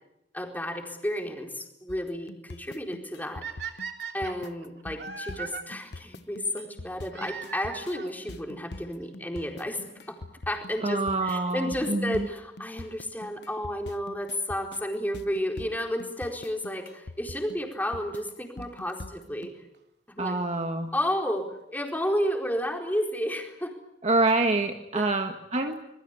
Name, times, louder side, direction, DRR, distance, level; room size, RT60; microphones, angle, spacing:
voice 1, 0.3-3.8 4.1-10.2 10.5-19.5 20.1-20.4 20.9-23.8 24.9-25.0, equal, 10° left, 2 dB, 4.4 m, -32 dB
sound 1, 1.9-19.5, left 2 dB, 70° left, 1.0 m, -43 dB
sound 2, 3.4-5.6 7.1-8.2 9.1-9.2 9.9-10.0 10.2-10.3 12.2-12.4 15.2-15.3 16.4-16.5 17.9-18.0 18.3-18.4 18.6-18.7 18.9-19.0 19.2-19.3 19.4-19.5 19.7-19.8, right 6 dB, 70° right, 3.3 m, -39 dB
voice 2, 10.8-12.3 20.2-20.9 24.0-25.8, right 2 dB, 40° right, 4 dB, 1.6 m, -26 dB
26.0 x 22.0 x 8.3 m, 0.83 s
head